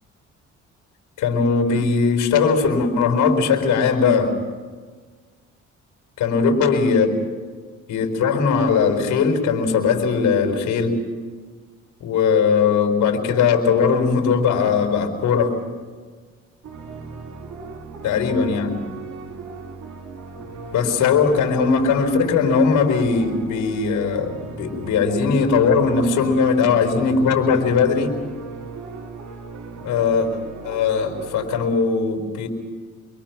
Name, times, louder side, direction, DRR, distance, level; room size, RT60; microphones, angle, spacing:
voice 1, 1.2-4.3 6.2-7.1 7.9-11.0 12.0-15.6 18.0-18.7 20.7-28.1 29.8-30.3 30.6-32.5, left 5 dB, 85° left, 5 dB, 4.4 m, -19 dB
sound 1, 16.6-31.6, right 4 dB, 65° right, 3.7 m, -37 dB
28.0 x 23.0 x 6.0 m, 1.5 s
cardioid pair, 90°, 30 cm